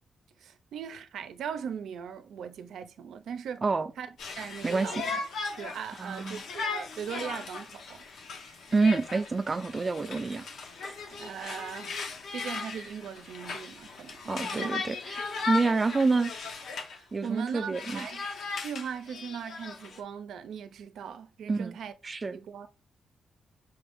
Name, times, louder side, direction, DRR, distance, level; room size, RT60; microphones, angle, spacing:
voice 1, 0.4-3.6 4.0-5.2 5.6-8.0 11.1-12.0 12.3-14.8 16.9-18.3 18.6-21.9 22.3-22.7, right 7 dB, 85° right, 0.5 m, -39 dB
Conversation, 4.2-17.0 17.3-20.0, left 4 dB, 75° left, 0.9 m, -37 dB
voice 2, 6.0-6.4 8.7-10.5 10.8-10.9 14.3-16.3 17.1-18.1 21.5-21.8 22.0-22.4, right 3 dB, 30° right, 0.5 m, -28 dB
5.6 x 2.6 x 3.5 m
cardioid pair, 125°, 0 cm